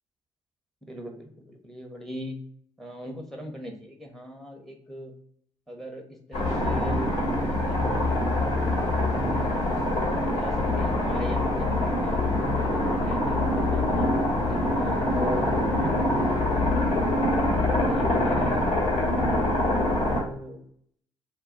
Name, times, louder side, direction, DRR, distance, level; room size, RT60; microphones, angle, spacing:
voice 1, 0.9-2.4 2.8-5.1 5.7-7.8 8.9-9.5 10.1-14.1 14.5-16.0 17.7-18.6 20.1-20.6, equal, ahead, 3 dB, 0.7 m, -40 dB
sound 1, 6.3-20.2, left 1 dB, 60° left, 1.2 m, -24 dB
2.2 x 2.1 x 3.7 m, 0.65 s
hypercardioid pair, 50°, 14 cm